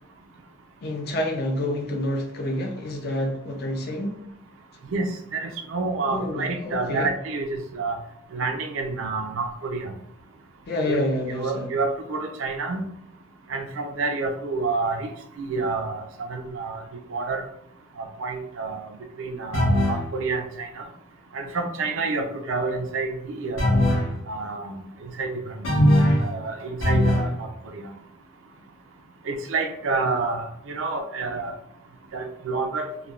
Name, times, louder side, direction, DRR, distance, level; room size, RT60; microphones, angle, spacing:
voice 1, 0.8-4.2 6.0-7.1 10.7-11.8, left 1 dB, 50° left, 0.4 m, -28 dB
voice 2, 4.9-8.0 8.3-10.0 10.9-11.0 11.4-12.9 13.5-15.1 15.4-16.0 16.3-16.8 17.1-17.4 18.0-18.9 19.2-20.8 21.3-23.8 24.3-24.7 25.2-25.5 26.2-27.9 29.3-31.5 32.1-32.9, right 3 dB, 85° right, 0.4 m, -28 dB
sound 1, 19.5-20.1 23.6-24.1 25.6-26.3 26.8-27.3, equal, 80° left, 0.8 m, -19 dB
3.2 x 2.1 x 2.3 m
head